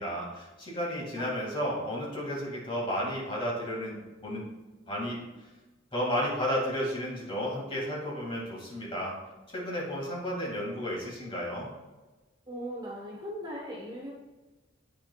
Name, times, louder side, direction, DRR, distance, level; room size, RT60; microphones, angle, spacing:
voice 1, 0.0-4.5 4.9-5.2 5.9-9.1 9.5-11.7, equal, 25° left, -4 dB, 2.3 m, -32 dB
voice 2, 12.5-14.1, equal, 25° right, -3 dB, 1.1 m, -39 dB
8.3 x 6.7 x 2.4 m, 1.2 s
head